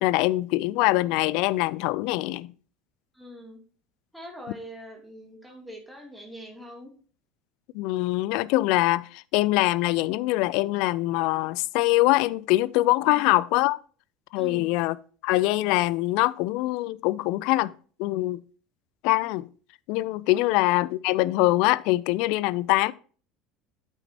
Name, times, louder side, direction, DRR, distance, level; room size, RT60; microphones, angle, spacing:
voice 1, 0.0-2.5 7.7-13.8 14.3-15.0 15.2-17.7 18.0-18.4 19.0-19.5 19.9-22.9, left 19 dB, 65° left, 0.4 m, -23 dB
voice 2, 3.1-3.6 4.1-6.9 13.0-13.3 14.4-14.7 20.4-20.6, equal, ahead, 2.8 m, -43 dB
9.1 x 8.9 x 2.8 m
hypercardioid pair, 70°, 0 cm